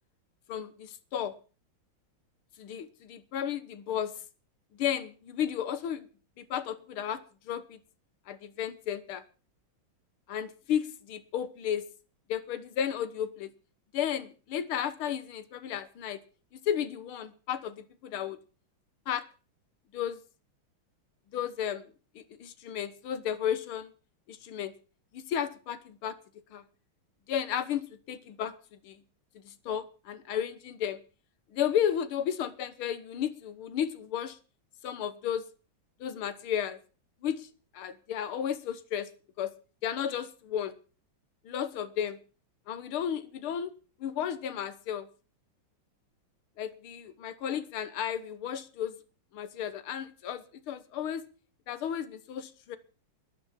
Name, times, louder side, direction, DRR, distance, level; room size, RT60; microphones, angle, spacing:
voice 1, 0.5-1.4 2.6-4.1 4.8-6.1 6.4-7.8 8.3-9.2 10.3-11.9 12.3-13.5 13.9-16.2 16.6-18.4 19.1-19.2 19.9-20.2 21.3-21.8 22.2-23.9 24.3-24.7 25.1-26.2 26.5-26.6 27.3-28.5 28.8-29.0 29.4-31.0 31.5-34.4 34.8-35.5 36.0-36.8 37.2-37.5 37.7-39.1 39.4-39.5 39.8-40.8 41.5-42.2 42.7-43.7 44.0-45.1 46.6-49.0 49.3-51.3 51.7-52.8, left 9 dB, 85° left, 12 dB, 2.0 m, -33 dB
12.5 x 11.0 x 7.3 m, 0.37 s
omnidirectional pair, 2.3 m